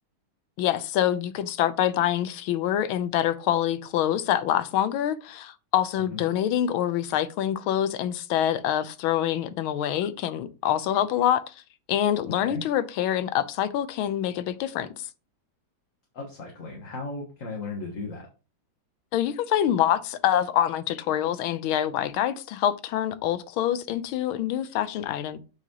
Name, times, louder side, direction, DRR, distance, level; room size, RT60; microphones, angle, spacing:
voice 1, 0.6-11.5 11.9-15.1 19.1-25.4, left 11 dB, 85° left, 1.5 m, -26 dB
voice 2, 12.3-12.6 16.1-18.3, left 3 dB, 45° left, 1.6 m, -36 dB
7.7 x 6.1 x 2.9 m
omnidirectional pair, 2.2 m